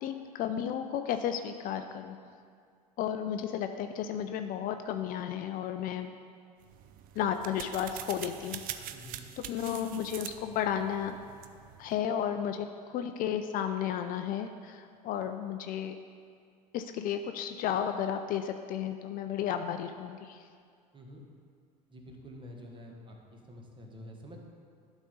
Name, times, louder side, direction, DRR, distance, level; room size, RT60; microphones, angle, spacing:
voice 1, 0.0-2.2 3.0-6.1 7.2-8.6 9.4-11.2 11.8-16.0 16.7-20.4, left 9 dB, 40° left, 8 dB, 0.4 m, -33 dB
sound 1, 6.6-12.0, right 11 dB, 45° right, 0.5 m, -44 dB
voice 2, 8.9-9.2 20.9-21.2 21.9-24.4, equal, 25° right, 1 dB, 1.4 m, -48 dB
11.5 x 4.1 x 5.2 m, 2.2 s
figure-of-eight pair, 70°, 21 cm